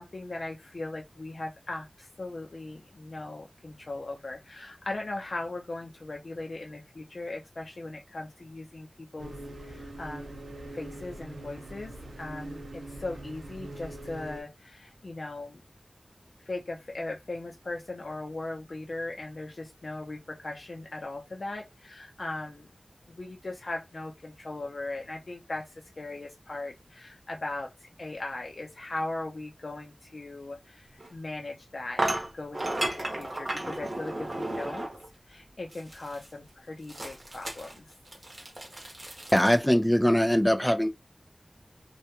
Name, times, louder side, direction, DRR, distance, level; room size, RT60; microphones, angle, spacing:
voice 1, 0.0-9.4 9.6-10.4 10.7-15.6 16.5-22.7 23.1-32.0 32.3-34.9 35.3-37.9, left 2 dB, 65° left, 0.5 m, -38 dB
sound 1, 9.2-14.4, right 1 dB, 80° right, 0.5 m, -42 dB
sound 2, 31.0-31.1 32.0-35.1 35.7-36.3 36.9-39.6, right 1 dB, 45° right, 0.9 m, -34 dB
voice 2, 39.3-40.9, equal, 10° left, 0.4 m, -22 dB
2.2 x 2.1 x 2.8 m
wide cardioid pair, 70°, 0 cm